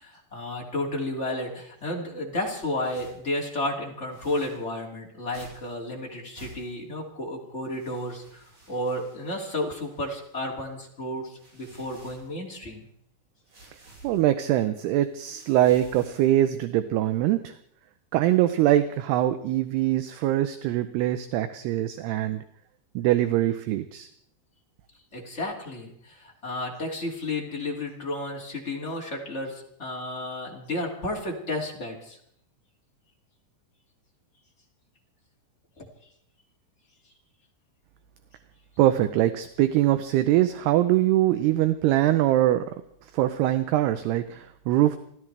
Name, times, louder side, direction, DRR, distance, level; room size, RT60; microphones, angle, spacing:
voice 1, 0.0-12.8 25.1-32.2 35.8-35.9, left 1 dB, 25° left, -1 dB, 1.6 m, -32 dB
sound 1, 2.8-3.3 4.1-4.7 5.3-5.8 6.3-6.9 7.6-10.6 11.2-12.8 13.5-14.2 14.8-16.4, right 1 dB, 45° right, 9.1 m, -52 dB
voice 2, 14.0-17.5 18.1-22.4 23.0-24.1 38.8-42.7 43.1-45.0, right 13 dB, 80° right, 10 dB, 2.5 m, -23 dB
28.5 x 14.5 x 3.3 m, 0.70 s
omnidirectional pair, 5.3 m